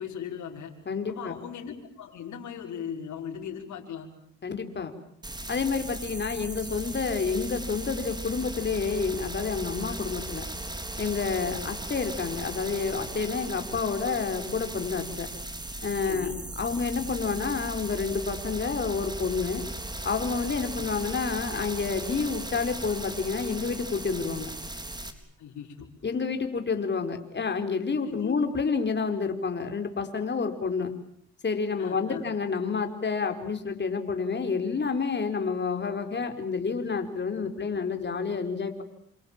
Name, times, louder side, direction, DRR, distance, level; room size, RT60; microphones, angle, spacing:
voice 1, 0.0-0.7 1.1-4.1 11.3-11.5 16.0-16.4 20.7-21.0 25.4-25.9 28.0-28.3 31.8-32.2, left 8 dB, 70° left, 0 dB, 5.7 m, -38 dB
voice 2, 0.9-1.4 4.4-4.9 5.5-10.5 11.0-15.3 15.8-19.6 20.0-24.5 26.0-30.9 31.4-38.8, left 5 dB, 35° left, 6 dB, 4.6 m, -29 dB
sound 1, 5.2-25.1, right 1 dB, 15° right, 4.0 m, -37 dB
29.0 x 27.5 x 7.5 m, 0.68 s
cardioid pair, 90°, 30 cm